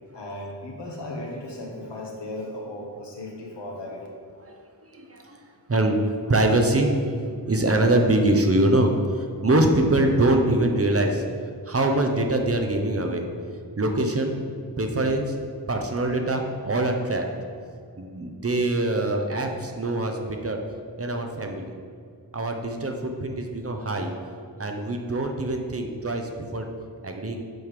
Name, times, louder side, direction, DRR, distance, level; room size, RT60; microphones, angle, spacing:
voice 1, 0.1-4.1, left 1 dB, 80° left, -1 dB, 1.3 m, -36 dB
voice 2, 4.9-5.4 5.7-6.0 6.3-11.2 11.7-13.2 13.8-14.4 14.8-15.3 15.7-17.3 18.0-20.6 21.0-21.7 22.3-24.1 24.6-26.7 27.0-27.4, right 1 dB, 35° right, 3 dB, 0.8 m, -23 dB
7.8 x 3.6 x 4.9 m, 2.1 s
wide cardioid pair, 60°, 41 cm